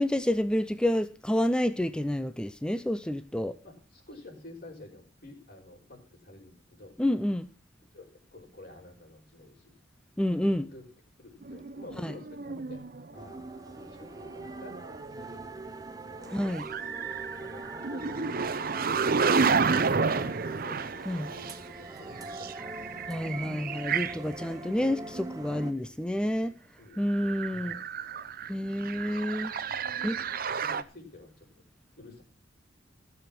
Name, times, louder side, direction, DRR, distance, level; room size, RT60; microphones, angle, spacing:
voice 1, 0.0-3.6 7.0-7.5 10.2-10.7 12.0-12.1 16.3-16.6 21.1-21.3 23.1-26.5 27.0-27.8 28.5-29.5 30.0-30.2, left 1 dB, 5° left, 12 dB, 0.6 m, -29 dB
voice 2, 3.6-6.9 7.9-9.8 10.4-10.9 11.2-12.8 13.1-14.7 15.2-16.4 17.4-18.4 18.7-19.3 20.0-20.9 21.3-23.2 25.8-26.5 26.8-27.8 29.0-29.2 29.5-31.5 32.0-32.2, left 2 dB, 50° left, 0 dB, 5.3 m, -50 dB
sound 1, 11.4-13.2 14.3-15.2 16.2-24.2 24.6-24.7 27.1-30.8, right 5 dB, 50° right, 0.7 m, -31 dB
sound 2, 13.2-25.7, right 2 dB, 20° right, 0.9 m, -43 dB
15.0 x 7.1 x 6.0 m, 0.36 s
head